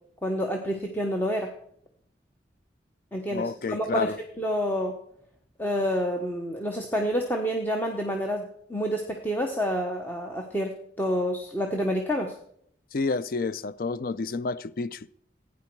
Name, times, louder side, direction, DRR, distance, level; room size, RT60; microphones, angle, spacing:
voice 1, 0.2-1.5 3.1-5.0 5.6-12.4, equal, 10° left, 1.0 m, -28 dB
voice 2, 3.3-4.2 12.9-15.1, left 4 dB, 50° left, 0.4 m, -30 dB
16.0 x 9.6 x 4.6 m
head